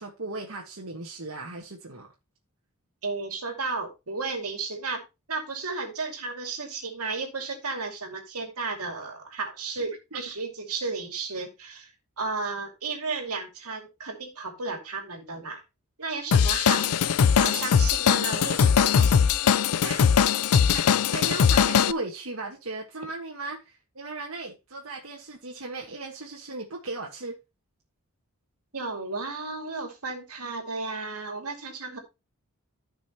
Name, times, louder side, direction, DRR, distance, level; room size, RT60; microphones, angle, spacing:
voice 1, 0.0-2.1 10.1-10.2 16.8-16.9 19.8-20.0 20.7-27.4, right 3 dB, 70° right, 1.5 m, -37 dB
voice 2, 3.0-5.0 5.3-11.9 12.2-15.6 16.0-17.1 17.4-19.2 28.7-32.0, right 4 dB, 90° right, 2.3 m, -33 dB
Drum kit / Drum, 16.3-21.9, left 7 dB, 85° left, 0.4 m, -21 dB
14.5 x 5.5 x 2.9 m
head